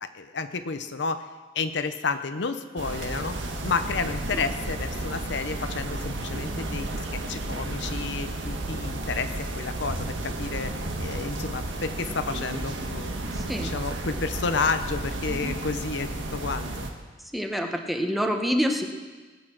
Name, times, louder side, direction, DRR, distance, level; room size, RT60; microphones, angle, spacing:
voice 1, 0.0-1.3 1.5-3.4 3.6-10.7 11.0-13.1 13.6-16.8, left 4 dB, 65° left, 9 dB, 0.8 m, -31 dB
sound 1, 2.8-16.9, right 2 dB, 80° right, 1.6 m, -32 dB
voice 2, 13.3-13.7 17.3-18.9, equal, ahead, 3 dB, 1.1 m, -27 dB
20.0 x 8.6 x 6.0 m, 1.4 s
head